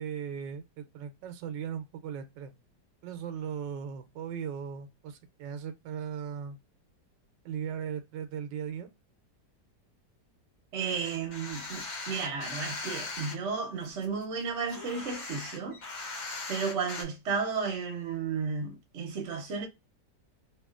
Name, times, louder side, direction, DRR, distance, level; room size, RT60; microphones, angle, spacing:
voice 1, 0.0-2.5 3.0-6.6 7.4-8.9, right 8 dB, 80° right, 1.2 m, -38 dB
voice 2, 10.7-15.8 16.5-19.7, right 5 dB, 55° right, 0.9 m, -33 dB
sound 1, 10.8-13.3 13.8-17.0, left 3 dB, 55° left, 1.2 m, -39 dB
2.9 x 2.7 x 2.3 m
omnidirectional pair, 1.9 m